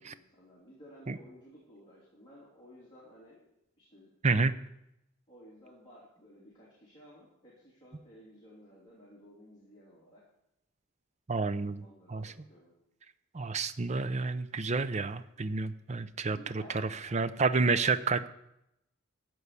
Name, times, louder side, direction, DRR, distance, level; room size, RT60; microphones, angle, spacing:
voice 1, 0.0-3.5 3.8-4.2 5.3-10.2 11.8-12.8 16.3-17.0, equal, 25° left, -7 dB, 3.2 m, -55 dB
voice 2, 11.3-12.3 13.3-16.6 17.1-18.3, right 4 dB, 35° right, 13 dB, 0.5 m, -30 dB
14.0 x 4.7 x 8.2 m, 0.83 s
head